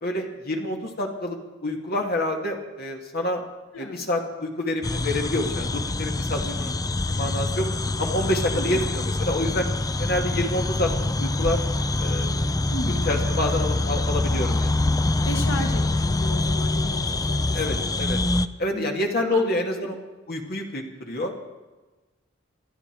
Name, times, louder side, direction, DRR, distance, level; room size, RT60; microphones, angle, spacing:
voice 1, 0.0-3.4 3.8-6.7 7.1-7.7 8.0-9.7 10.0-11.6 12.0-12.5 12.9-14.7 17.5-18.2 18.6-20.0 20.3-21.4, left 1 dB, 55° left, 2 dB, 2.4 m, -27 dB
voice 2, 3.7-4.1 8.5-8.9 12.7-13.2 15.2-17.9 18.7-19.9, left 1 dB, 90° left, 3 dB, 1.6 m, -35 dB
sound 1, 4.8-18.5, left 2 dB, 20° left, 0.5 m, -25 dB
26.5 x 11.0 x 4.7 m, 1.2 s
head